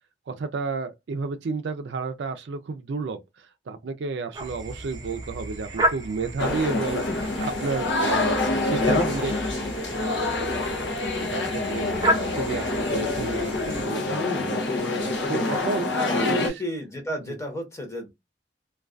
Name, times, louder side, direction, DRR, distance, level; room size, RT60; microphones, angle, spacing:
voice 1, 0.3-9.3 11.2-16.6 17.3-17.4, right 4 dB, 75° right, 0.4 m, -32 dB
sound 1, 4.3-13.8, equal, 25° right, 0.6 m, -32 dB
sound 2, 6.4-16.5, left 2 dB, 80° left, 0.6 m, -26 dB
voice 2, 15.9-18.1, equal, 15° left, 0.8 m, -32 dB
2.3 x 2.3 x 2.4 m
head